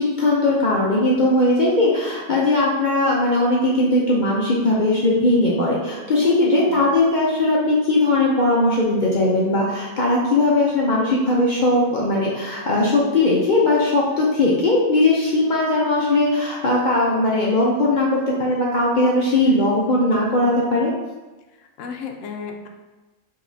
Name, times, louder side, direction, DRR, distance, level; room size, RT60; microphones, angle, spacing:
voice 1, 0.0-20.9, left 2 dB, 50° left, -4 dB, 0.6 m, -19 dB
voice 2, 6.2-6.8 21.6-22.7, left 5 dB, 75° left, 4 dB, 0.9 m, -32 dB
5.0 x 2.8 x 2.7 m, 1.2 s
omnidirectional pair, 1.4 m